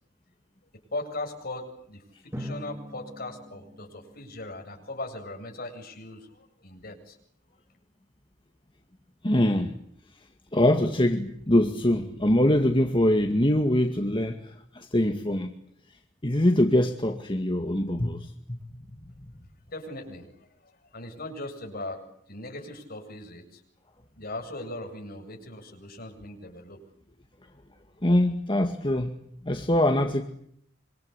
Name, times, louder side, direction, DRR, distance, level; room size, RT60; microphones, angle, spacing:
voice 1, 0.9-7.2 19.7-23.6 24.2-26.8, left 2 dB, 50° left, 4 dB, 7.9 m, -39 dB
Drum, 2.3-5.0, equal, 15° right, 5.4 m, -42 dB
voice 2, 9.2-9.7 10.5-15.5 16.2-18.6 28.0-29.1 29.4-30.2, left 1 dB, 25° left, 5 dB, 2.1 m, -23 dB
26.5 x 26.0 x 8.5 m, 0.69 s
head